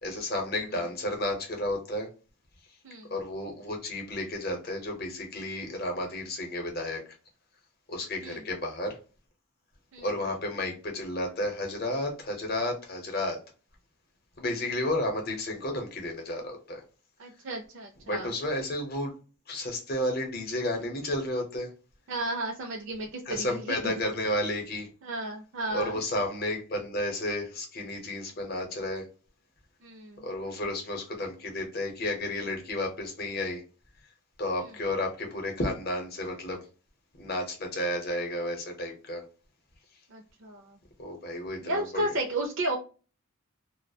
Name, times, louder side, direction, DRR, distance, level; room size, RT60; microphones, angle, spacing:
voice 1, 0.0-2.1 3.1-7.0 7.9-9.0 10.0-13.4 14.4-16.8 18.0-19.1 19.5-21.7 23.3-24.9 25.7-29.1 30.2-33.6 34.4-36.6 37.2-39.2 41.0-42.1, left 1 dB, 45° left, 2 dB, 0.7 m, -32 dB
voice 2, 17.2-18.3 22.1-23.9 25.0-26.0 29.8-30.2 34.6-34.7 40.1-40.8 41.6-42.8, right 1 dB, 60° right, 1 dB, 0.4 m, -33 dB
2.3 x 2.0 x 2.6 m, 0.35 s
head